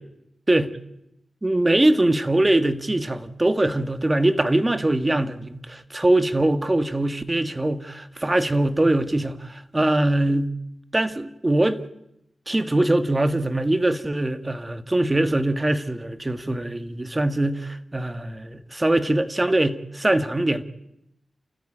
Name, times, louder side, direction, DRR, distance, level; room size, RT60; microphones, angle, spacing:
voice 1, 1.4-10.5 10.9-11.8 12.5-20.6, right 1 dB, 20° right, 1.5 m, -22 dB
29.5 x 14.5 x 9.0 m
wide cardioid pair, 75°, 0 cm